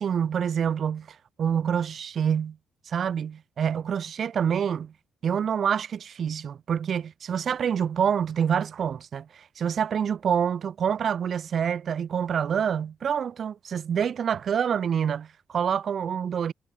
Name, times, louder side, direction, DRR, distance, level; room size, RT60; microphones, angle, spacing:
voice 1, 0.0-2.6 2.9-4.9 5.2-16.5, right 8 dB, 55° right, 7.4 m, -27 dB
cardioid pair, 90°, 0 cm